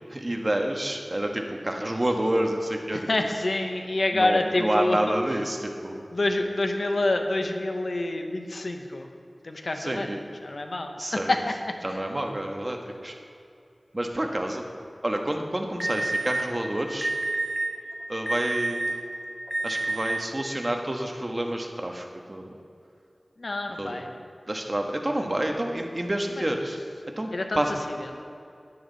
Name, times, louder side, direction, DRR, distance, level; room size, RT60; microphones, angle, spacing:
voice 1, 0.1-3.1 4.1-6.1 9.8-10.2 11.0-11.3 11.8-12.8 13.0-13.1 13.9-14.6 15.0-17.1 18.1-18.8 19.6-22.5 23.8-24.0 24.5-26.8 27.2-27.3 27.5-27.7, right 1 dB, 35° right, 3 dB, 1.3 m, -28 dB
voice 2, 2.9-5.1 6.1-9.1 9.4-10.1 10.4-12.0 23.4-24.2 27.3-28.2, left 2 dB, 80° left, 4 dB, 1.0 m, -27 dB
Alarm, 15.8-16.3 17.0-17.6 18.3-18.9 19.5-20.1, right 2 dB, ahead, 1.9 m, -28 dB
13.5 x 9.7 x 4.1 m, 2.5 s
wide cardioid pair, 55°, 0 cm